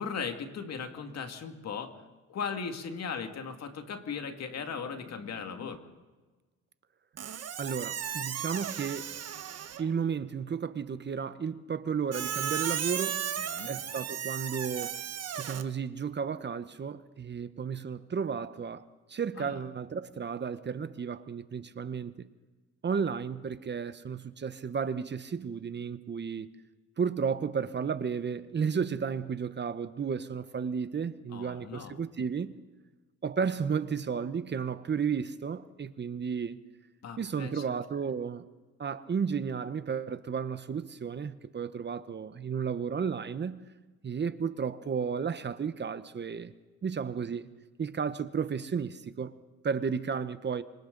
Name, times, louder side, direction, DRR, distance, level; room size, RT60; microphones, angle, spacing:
voice 1, 0.0-5.8 13.4-13.8 19.4-19.6 31.3-32.0 37.0-37.6, left 6 dB, 60° left, 2.2 m, -38 dB
Squeak, 7.2-9.9 12.1-15.6, right 9 dB, 55° right, 1.3 m, -35 dB
voice 2, 7.6-9.1 9.8-13.2 13.7-15.0 15.4-18.8 19.1-22.3 22.8-26.5 27.0-32.5 33.2-36.6 37.2-38.5 38.8-43.6 44.0-46.5 46.8-47.5 47.8-49.3 49.6-50.6, right 6 dB, 35° right, 0.9 m, -33 dB
26.5 x 25.5 x 4.0 m
cardioid pair, 90°, 30 cm